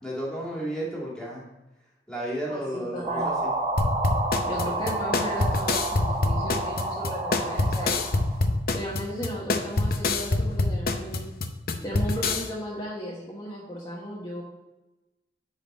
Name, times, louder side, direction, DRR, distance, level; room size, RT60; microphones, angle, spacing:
voice 1, 0.0-1.4 2.1-3.5, right 1 dB, 5° left, -5 dB, 2.1 m, -32 dB
voice 2, 2.5-3.3 4.4-8.1 8.7-11.3 11.8-14.4, equal, 25° left, -4 dB, 1.2 m, -35 dB
sound 1, 3.0-8.5, right 2 dB, 35° right, 1.5 m, -30 dB
sound 2, 3.8-12.5, left 2 dB, 55° left, 0.6 m, -26 dB
10.0 x 4.1 x 4.2 m, 1.0 s
head